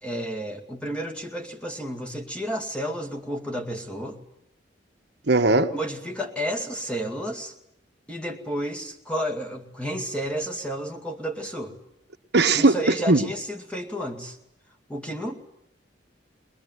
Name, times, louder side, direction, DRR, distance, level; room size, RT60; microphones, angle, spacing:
voice 1, 0.0-4.2 5.7-7.5 8.1-11.7 12.5-14.4 14.9-15.4, equal, 5° left, 1 dB, 2.3 m, -31 dB
voice 2, 5.3-5.7 12.3-12.7 13.1-13.3, right 3 dB, 60° right, 7 dB, 1.3 m, -18 dB
21.5 x 21.0 x 9.5 m, 0.77 s
head